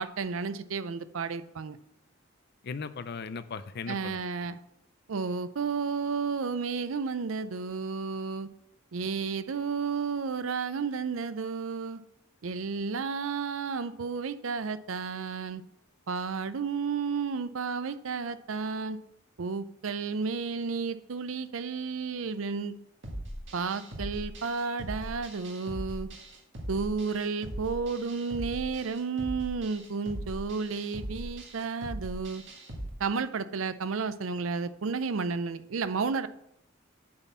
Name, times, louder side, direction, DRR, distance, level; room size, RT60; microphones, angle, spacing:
voice 1, 0.0-1.8 3.9-4.6 5.1-8.5 8.9-12.0 12.4-15.6 16.1-19.0 19.4-22.7 23.5-26.1 26.7-32.4 33.0-36.3, right 5 dB, 80° right, 13 dB, 0.5 m, -32 dB
voice 2, 2.6-4.2, left 5 dB, 55° left, 13 dB, 0.5 m, -37 dB
sound 1, 23.0-32.9, right 1 dB, 65° right, 1.7 m, -40 dB
8.7 x 4.2 x 7.1 m, 0.79 s
head